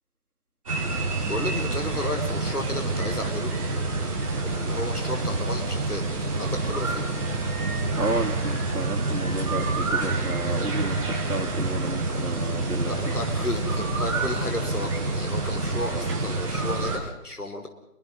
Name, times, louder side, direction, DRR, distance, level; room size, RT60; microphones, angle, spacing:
sound 1, 0.7-17.0, right 2 dB, 20° right, 6.0 m, -27 dB
voice 1, 1.3-3.5 4.4-6.0 6.3-7.1 12.8-17.7, left 1 dB, 80° left, 5 dB, 4.9 m, -33 dB
voice 2, 8.0-13.1, right 2 dB, 75° right, 2 dB, 4.1 m, -32 dB
28.5 x 24.0 x 5.5 m, 0.82 s
figure-of-eight pair, 165°, 44 cm